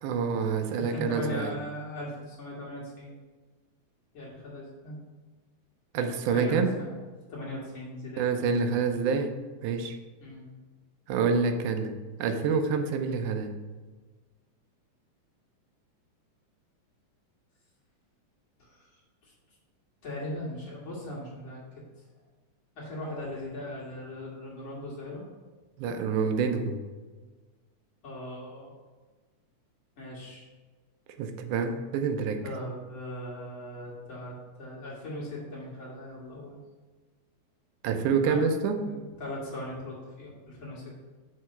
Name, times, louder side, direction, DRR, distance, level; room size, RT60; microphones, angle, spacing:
voice 1, 0.0-1.5 5.9-6.8 8.2-10.0 11.1-13.5 25.8-26.8 31.2-32.4 37.8-38.9, right 5 dB, 80° right, 7 dB, 2.1 m, -27 dB
voice 2, 0.8-3.2 4.1-5.0 6.3-6.9 7.3-8.3 10.2-10.5 18.6-19.3 20.0-21.6 22.7-25.3 28.0-28.7 30.0-30.5 32.4-36.6 38.2-38.4 38.8-40.8, equal, 40° left, -6 dB, 2.9 m, -39 dB
7.6 x 4.7 x 5.6 m, 1.3 s
omnidirectional pair, 3.6 m